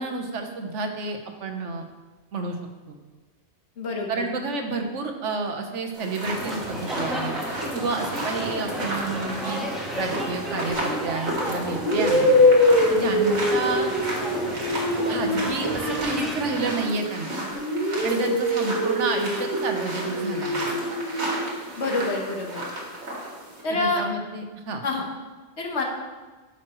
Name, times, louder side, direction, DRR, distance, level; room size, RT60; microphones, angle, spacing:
voice 1, 0.0-1.9 2.3-2.6 2.9-3.0 4.1-7.3 7.7-9.6 9.9-12.3 12.9-13.9 15.1-17.5 18.0-20.7 23.7-24.8, right 4 dB, 90° right, 5 dB, 1.2 m, -30 dB
voice 2, 3.8-4.2 21.8-22.6 23.6-24.0 24.8-25.0 25.6-25.8, left 2 dB, 70° left, 1 dB, 1.4 m, -27 dB
sound 1, 5.9-23.6, right 1 dB, 65° right, 1.9 m, -33 dB
sound 2, 6.2-16.8, equal, ahead, 1.2 m, -33 dB
sound 3, 10.7-11.0 11.8-17.1 17.5-21.5, left 1 dB, 45° left, 3.2 m, -24 dB
12.5 x 5.8 x 3.0 m, 1.3 s
omnidirectional pair, 1.2 m